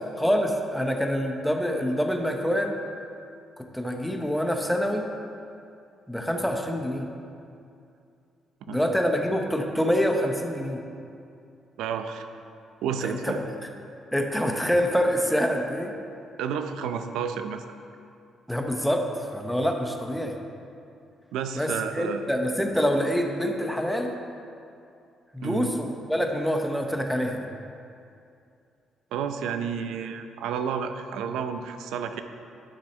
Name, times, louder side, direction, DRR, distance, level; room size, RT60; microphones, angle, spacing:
voice 1, 0.2-2.7 3.7-5.1 6.1-7.1 8.7-10.8 13.0-13.4 14.1-15.9 18.5-19.0 19.3-20.4 21.5-24.1 25.3-27.4, equal, ahead, 3 dB, 1.0 m, -26 dB
voice 2, 11.8-12.3 12.8-13.4 16.4-17.6 21.3-22.3 25.4-25.7 29.1-32.2, right 7 dB, 90° right, 8 dB, 0.5 m, -31 dB
11.5 x 6.2 x 4.3 m, 2.5 s
cardioid pair, 90°, 0 cm